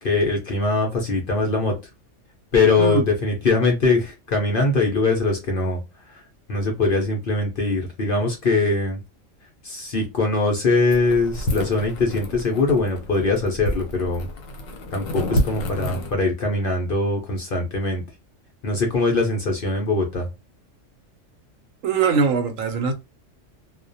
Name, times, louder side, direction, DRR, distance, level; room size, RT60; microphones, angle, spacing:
voice 1, 0.0-1.8 2.5-5.8 6.1-6.2 6.5-9.0 9.6-14.3 14.9-18.0 18.6-20.3, left 3 dB, 55° left, 0.6 m, -22 dB
sound 1, 10.9-16.1, left 1 dB, 85° left, 1.0 m, -29 dB
voice 2, 21.8-22.9, right 5 dB, 85° right, 1.0 m, -21 dB
2.3 x 2.1 x 2.6 m
omnidirectional pair, 1.4 m